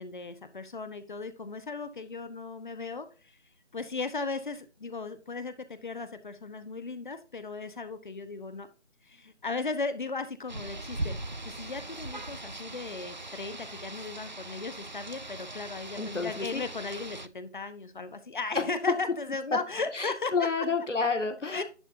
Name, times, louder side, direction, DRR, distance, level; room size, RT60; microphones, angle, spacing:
voice 1, 0.0-3.1 3.7-5.5 5.8-8.7 9.4-11.1 11.4-20.3 21.5-21.6, left 4 dB, 40° left, 11 dB, 1.0 m, -36 dB
Rain, 10.5-17.3, right 2 dB, 40° right, 0.4 m, -40 dB
voice 2, 16.0-16.6 18.5-18.9 19.5-19.6 19.9-21.6, left 4 dB, 90° left, 5 dB, 2.1 m, -29 dB
11.0 x 5.6 x 2.7 m, 0.33 s
figure-of-eight pair, 165°, 36 cm